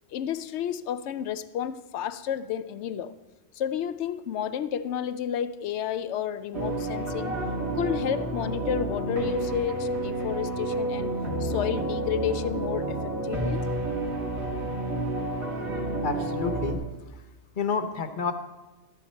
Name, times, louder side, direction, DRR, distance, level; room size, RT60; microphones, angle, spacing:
voice 1, 0.1-3.1 3.5-7.4 7.7-11.1 11.4-13.0 13.2-13.6, left 9 dB, 75° left, 0.9 m, -31 dB
sound 1, 6.5-16.7, right 2 dB, 70° right, 2.5 m, -30 dB
voice 2, 16.0-16.8 17.6-18.3, left 5 dB, 50° left, 1.0 m, -29 dB
13.0 x 10.5 x 4.3 m
omnidirectional pair, 1.2 m